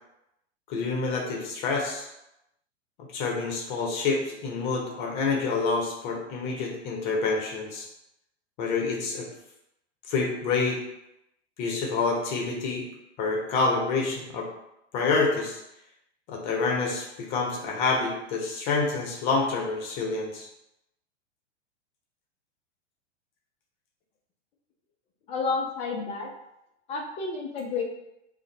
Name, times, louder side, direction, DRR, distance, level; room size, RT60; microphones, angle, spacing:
voice 1, 0.7-2.1 3.1-7.9 8.6-9.3 10.1-10.8 11.6-12.8 13.2-14.5 14.9-15.6 16.3-20.5, left 4 dB, 40° left, 0 dB, 0.8 m, -27 dB
voice 2, 25.3-26.3 26.9-27.8, left 4 dB, 20° left, 1 dB, 0.4 m, -30 dB
2.6 x 2.5 x 3.9 m, 0.85 s
figure-of-eight pair, 100°, 36 cm